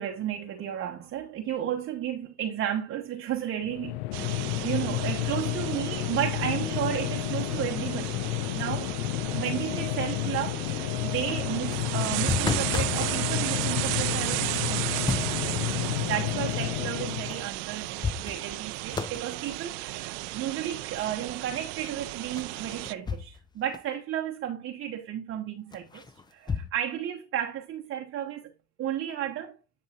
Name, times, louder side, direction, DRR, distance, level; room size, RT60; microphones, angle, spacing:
voice 1, 0.0-8.3 8.5-8.9 9.2-26.0 26.3-28.5 28.8-29.6, right 10 dB, 35° right, 0.9 m, -33 dB
sound 1, 3.6-17.5, left 19 dB, 70° left, 0.5 m, -31 dB
sound 2, 4.1-22.9, right 19 dB, 60° right, 0.6 m, -34 dB
sound 3, 11.6-13.1 14.7-15.5 17.3-17.4 17.8-18.6 18.9-19.3 22.4-23.5 23.7-23.8 25.7-26.7, left 5 dB, 15° left, 0.6 m, -32 dB
9.5 x 5.4 x 2.7 m
hypercardioid pair, 85°, 34 cm